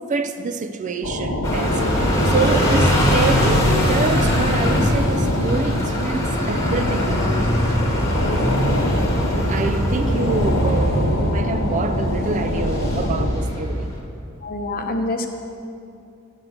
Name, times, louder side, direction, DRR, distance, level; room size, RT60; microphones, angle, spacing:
voice 1, 0.0-1.8 2.3-7.6 9.5-13.9, right 3 dB, 35° right, 9 dB, 0.4 m, -26 dB
sound 1, 1.0-13.3, left 1 dB, 90° left, 1.1 m, -24 dB
sound 2, 1.4-14.0, equal, 15° left, 1.2 m, -22 dB
voice 2, 14.4-15.3, left 2 dB, 45° left, 5 dB, 0.8 m, -26 dB
7.4 x 6.5 x 7.8 m, 2.6 s
head